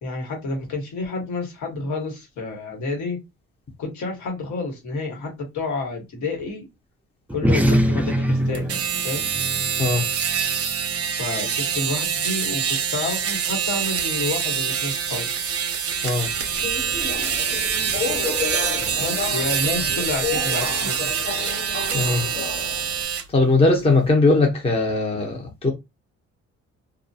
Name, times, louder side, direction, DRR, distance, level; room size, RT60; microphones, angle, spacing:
voice 1, 0.0-3.2 3.8-6.6 7.3-9.3 11.2-15.3 19.0-21.1, left 3 dB, 75° left, 1.3 m, -29 dB
sound 1, 7.3-12.1, equal, 5° right, 0.4 m, -25 dB
sound 2, 8.5-23.2, right 7 dB, 50° right, 0.6 m, -25 dB
Subway metro underground, 16.3-23.0, left 4 dB, 45° left, 1.1 m, -31 dB
voice 2, 21.9-22.3 23.3-25.7, left 3 dB, 20° left, 0.7 m, -19 dB
2.3 x 2.2 x 2.7 m
cardioid pair, 90°, 30 cm